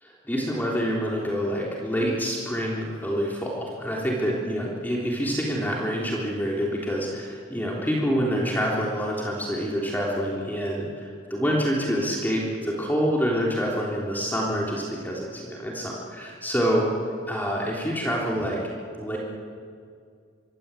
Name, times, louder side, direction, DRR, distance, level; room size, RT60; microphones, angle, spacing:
voice 1, 0.0-16.9 17.3-18.6 19.0-19.2, equal, 10° left, -3 dB, 3.5 m, -27 dB
25.5 x 23.0 x 8.5 m, 2.2 s
head